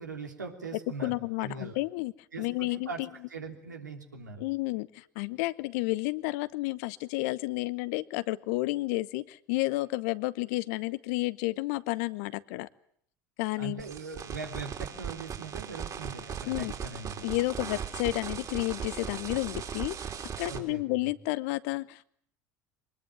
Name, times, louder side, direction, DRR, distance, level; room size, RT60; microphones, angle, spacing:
voice 1, 0.0-1.8 2.3-3.0 3.3-4.4 13.6-17.2 20.4-21.1, right 4 dB, 90° right, 3 dB, 3.1 m, -41 dB
voice 2, 1.0-2.1 2.4-3.1 4.4-12.7 13.4-13.8 16.4-16.7 17.2-22.0, left 20 dB, 65° left, 17 dB, 0.9 m, -31 dB
sound 1, 13.8-20.6, right 7 dB, 40° right, 4.1 m, -38 dB
23.5 x 20.5 x 9.2 m, 0.66 s
hypercardioid pair, 70°, 9 cm